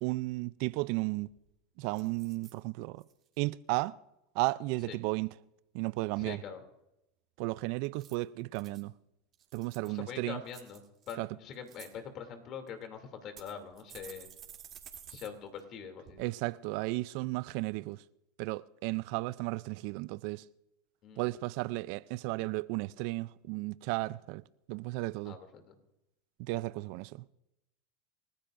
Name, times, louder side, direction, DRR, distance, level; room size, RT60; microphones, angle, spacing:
voice 1, 0.0-1.3 1.8-3.0 3.4-4.0 4.3-5.3 5.7-6.4 7.4-8.9 9.5-10.4 11.2-11.3 16.2-18.0 18.4-20.5 21.2-25.4 26.4-27.3, right 21 dB, 60° right, 0.4 m, -34 dB
sound 1, 1.2-1.5 2.0-2.5 3.0-3.4 7.8-8.8 9.3-10.0 10.5-11.2 11.5-11.9 12.7-12.8 13.4-15.3 15.6-15.7 16.1-16.2, right 9 dB, 40° right, 2.9 m, -52 dB
voice 2, 6.2-6.6 9.8-14.3 15.1-16.3 21.0-21.3 25.2-25.8, left 7 dB, 45° left, 2.7 m, -44 dB
29.0 x 15.0 x 2.6 m
supercardioid pair, 115°, 0 cm